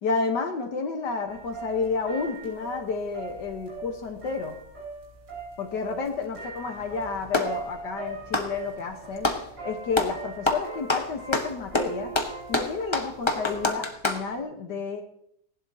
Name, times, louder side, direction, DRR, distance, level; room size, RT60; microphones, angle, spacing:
voice 1, 0.0-4.6 5.6-9.3 9.6-12.1 12.5-15.0, left 4 dB, 75° left, 4 dB, 1.9 m, -30 dB
sound 1, 1.3-13.7, right 4 dB, 75° right, 6.6 m, -41 dB
Clapping, 6.7-7.6 8.2-9.5 9.9-10.2 10.5-14.3, left 2 dB, 20° left, 0.9 m, -27 dB
20.0 x 11.0 x 2.9 m, 0.71 s
omnidirectional pair, 1.8 m